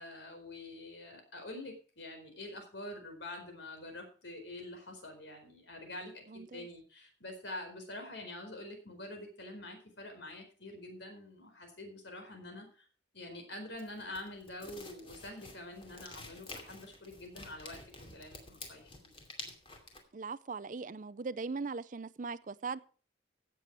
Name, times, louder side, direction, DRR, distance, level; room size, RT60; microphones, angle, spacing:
voice 1, 0.0-12.8 13.1-17.8 18.1-18.9, left 1 dB, 70° left, 4.5 m, -46 dB
voice 2, 6.3-6.7 20.1-22.8, right 4 dB, 45° right, 0.5 m, -39 dB
sound 1, 13.7-20.0, left 2 dB, 30° left, 2.6 m, -49 dB
16.0 x 7.8 x 4.7 m
head